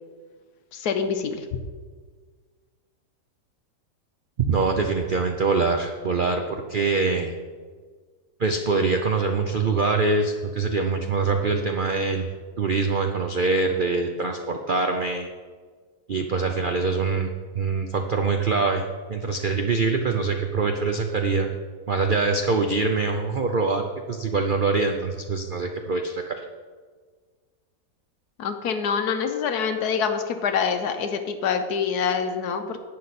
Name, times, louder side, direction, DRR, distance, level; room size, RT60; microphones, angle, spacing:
voice 1, 0.7-1.4 28.4-32.8, left 6 dB, 70° left, 7 dB, 1.3 m, -26 dB
voice 2, 4.4-7.3 8.4-12.3 12.6-15.3 16.1-18.8 19.1-21.5 21.9-26.4, right 4 dB, 80° right, 4 dB, 0.4 m, -24 dB
11.5 x 8.6 x 4.2 m, 1.5 s
omnidirectional pair, 1.8 m